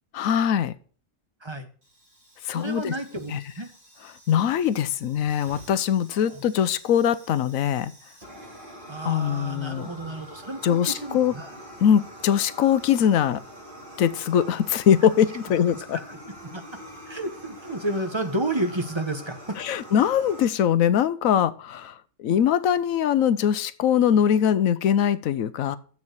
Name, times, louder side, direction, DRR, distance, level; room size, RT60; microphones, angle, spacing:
voice 1, 0.1-0.7 2.4-2.9 3.3-3.4 4.3-7.9 9.0-9.9 10.6-11.3 11.8-13.4 14.0-16.0 19.6-25.8, left 9 dB, 85° left, 15 dB, 1.1 m, -22 dB
Fire, 1.8-20.4, equal, 40° right, 4.4 m, -45 dB
voice 2, 2.5-3.7 6.1-6.4 8.9-11.6 15.9-16.2 16.5-16.6 17.1-19.6, right 1 dB, 20° right, 7 dB, 1.1 m, -31 dB
7.2 x 6.6 x 8.0 m, 0.43 s
omnidirectional pair, 1.4 m